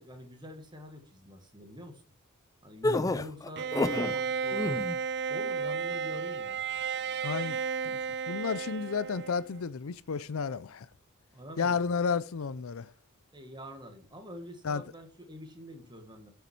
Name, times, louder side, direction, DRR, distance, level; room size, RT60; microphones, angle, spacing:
voice 1, 0.0-2.0 2.6-4.8 5.3-6.6 11.3-11.9 13.3-16.3, left 1 dB, 20° right, 1.7 m, -46 dB
sound 1, 2.8-4.1 4.5-5.0, left 2 dB, 15° left, 0.4 m, -29 dB
Bowed string instrument, 3.6-9.6, right 6 dB, 50° right, 0.4 m, -33 dB
voice 2, 7.2-8.0 8.3-10.9 11.6-12.9 14.6-14.8, left 5 dB, 75° left, 0.5 m, -32 dB
9.3 x 5.8 x 4.4 m
head